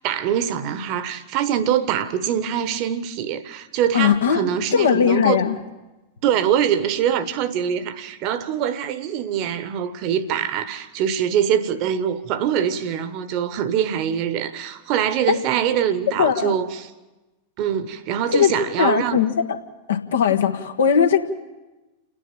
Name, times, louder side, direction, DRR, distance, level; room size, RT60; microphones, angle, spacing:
voice 1, 0.0-5.4 6.2-16.9 17.6-19.3, right 9 dB, 45° right, 1.3 m, -23 dB
voice 2, 3.9-4.4 4.7-5.6 15.3-15.4 16.2-16.5 18.3-18.5 18.8-19.6 19.9-21.2, left 8 dB, 65° left, 1.4 m, -19 dB
29.5 x 10.0 x 9.0 m
figure-of-eight pair, 90°, 0 cm